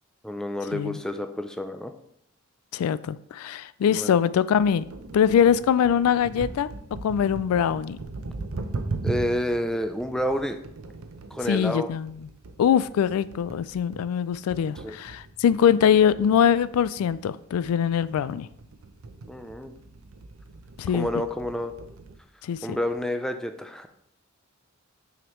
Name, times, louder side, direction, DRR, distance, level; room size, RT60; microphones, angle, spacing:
voice 1, 0.2-1.9 3.9-4.2 9.0-10.6 11.3-11.9 14.8-15.0 19.3-19.7 20.9-21.7 22.6-23.9, equal, 5° left, 0.4 m, -29 dB
voice 2, 2.7-6.7 7.0-8.0 11.5-12.2 12.6-18.5 20.8-21.1 22.5-22.8, left 8 dB, 80° left, 0.3 m, -23 dB
sound 1, 4.6-22.2, right 3 dB, 75° right, 0.6 m, -39 dB
6.1 x 5.0 x 3.1 m
head